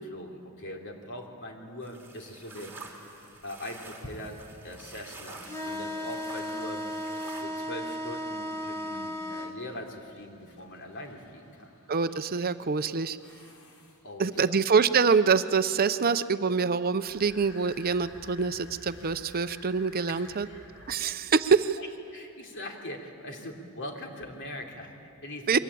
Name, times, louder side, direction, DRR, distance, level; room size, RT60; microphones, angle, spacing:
voice 1, 0.1-2.7 3.4-6.9 7.4-11.7 14.0-14.5 20.1-20.6 20.9-21.1 21.8-25.6, left 1 dB, 55° left, 1 dB, 3.3 m, -42 dB
sound 1, 1.8-7.4, right 3 dB, 10° right, 3.6 m, -48 dB
sound 2, 2.5-14.4 17.1-20.9, left 2 dB, 75° left, 3.7 m, -55 dB
sound 3, 5.4-9.5, equal, 15° left, 1.8 m, -35 dB
voice 2, 11.9-13.2 14.2-20.5 20.9-21.8 25.5-25.6, right 5 dB, 45° right, 12 dB, 0.6 m, -25 dB
29.0 x 23.0 x 8.6 m, 2.6 s
head